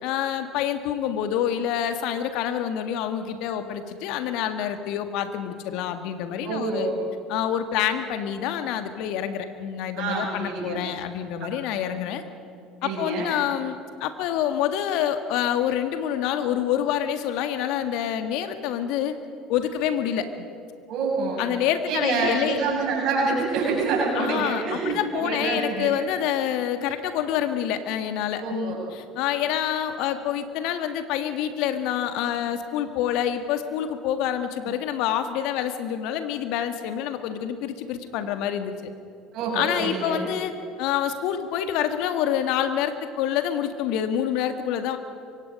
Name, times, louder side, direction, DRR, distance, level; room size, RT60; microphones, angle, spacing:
voice 1, 0.0-6.9 7.3-12.2 12.8-19.1 19.5-20.5 21.4-22.6 24.1-38.8 39.5-40.5 40.8-45.0, left 10 dB, 60° left, 8 dB, 1.6 m, -27 dB
voice 2, 6.4-7.0 10.0-10.8 11.4-11.5 12.8-13.3 20.9-21.4 21.9-26.0 28.4-28.8 39.3-40.2, right 4 dB, 55° right, -3 dB, 7.4 m, -27 dB
25.0 x 23.5 x 5.3 m, 2.4 s
figure-of-eight pair, 65°, 0 cm